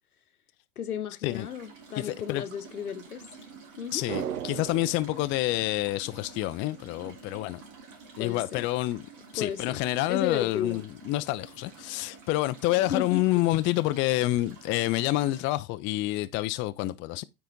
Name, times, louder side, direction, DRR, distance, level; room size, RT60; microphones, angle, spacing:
voice 1, 0.8-3.2 3.8-4.0 8.2-8.7 9.3-9.8 10.1-10.8 12.8-13.2, left 8 dB, 90° left, 0.9 m, -34 dB
sound 1, 1.3-15.5, right 4 dB, 45° right, 3.2 m, -49 dB
voice 2, 2.0-2.4 3.9-7.6 8.2-9.0 9.3-17.2, left 17 dB, 30° left, 0.4 m, -28 dB
sound 2, 4.1-6.6 6.8-6.9, right 9 dB, 80° right, 0.7 m, -38 dB
9.1 x 4.1 x 3.5 m
hypercardioid pair, 95°, 43 cm